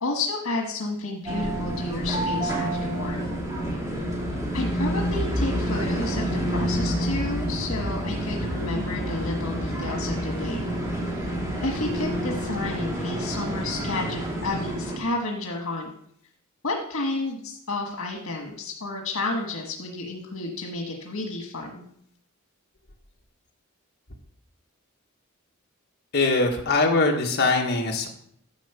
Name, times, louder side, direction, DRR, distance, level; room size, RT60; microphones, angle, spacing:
voice 1, 0.0-3.2 4.5-10.7 11.6-15.9 16.6-21.9, left 2 dB, 85° left, 1 dB, 1.4 m, -31 dB
sound 1, 1.3-15.0, equal, 15° right, 2.3 m, -28 dB
voice 2, 26.1-28.1, left 3 dB, 50° left, 0 dB, 1.5 m, -22 dB
10.5 x 5.0 x 7.0 m, 0.67 s
head